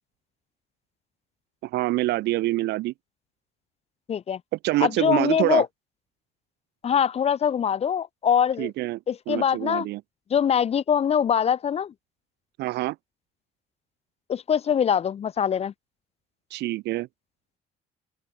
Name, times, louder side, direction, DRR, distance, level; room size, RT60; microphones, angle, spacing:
voice 1, 1.6-2.9 4.6-5.6 8.6-9.0 9.3-10.0 12.6-13.0 16.5-17.1, right 18 dB, 80° right, 1.7 m, -26 dB
voice 2, 4.1-4.4 4.8-5.7 6.8-8.7 9.1-9.9 10.3-11.9 14.3-15.7, left 8 dB, 35° left, 0.7 m, -23 dB
open air
cardioid pair, 110°, 17 cm